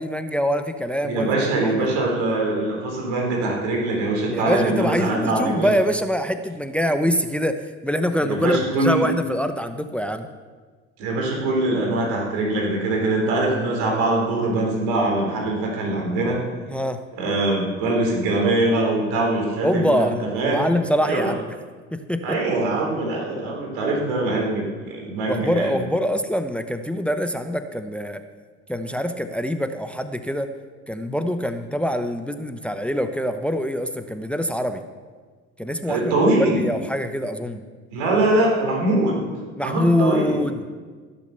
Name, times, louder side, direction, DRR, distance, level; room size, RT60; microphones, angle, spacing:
voice 1, 0.0-1.3 1.6-1.8 4.3-10.3 16.7-17.0 19.6-21.5 21.9-22.4 25.3-28.2 28.7-30.5 30.9-34.8 35.6-37.6 39.6-40.7, equal, 5° left, 8 dB, 0.9 m, -24 dB
voice 2, 1.0-5.7 8.2-9.0 11.0-16.4 17.2-20.6 21.0-21.3 22.2-25.8 35.9-36.6 37.9-39.2 39.6-40.4, right 2 dB, 75° right, 0 dB, 3.9 m, -22 dB
16.5 x 7.2 x 6.8 m, 1.4 s
hypercardioid pair, 70°, 36 cm